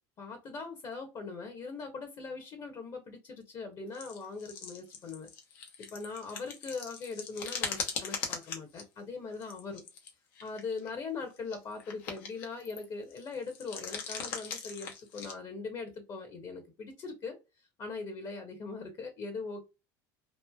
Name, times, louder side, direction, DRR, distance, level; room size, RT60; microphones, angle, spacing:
voice 1, 0.2-5.3 5.6-9.8 10.4-17.4 17.8-19.6, left 4 dB, 40° left, 1.0 m, -41 dB
sound 1, 3.9-8.8 9.3-10.1 10.4-10.9 11.4-12.8 13.1-15.3, left 6 dB, 75° left, 0.8 m, -40 dB
3.2 x 2.4 x 2.2 m
hypercardioid pair, 85°, 11 cm